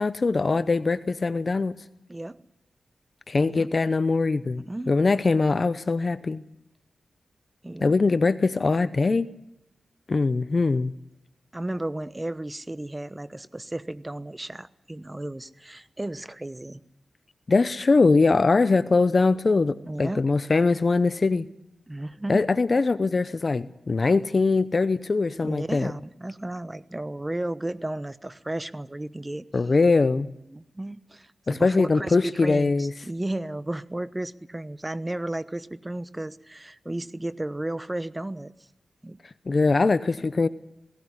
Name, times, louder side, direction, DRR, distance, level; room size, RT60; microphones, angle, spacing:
voice 1, 0.0-1.7 3.3-6.4 7.8-9.3 10.1-10.9 17.5-21.5 22.3-25.9 29.5-30.3 31.5-32.9 39.5-40.5, left 3 dB, 50° left, 0.7 m, -22 dB
voice 2, 3.4-3.7 4.6-5.0 7.6-8.0 11.5-16.8 19.9-20.2 21.9-22.5 25.4-29.5 30.5-38.5 39.0-39.2, right 1 dB, 20° right, 0.9 m, -34 dB
18.0 x 16.5 x 9.8 m
cardioid pair, 55°, 0 cm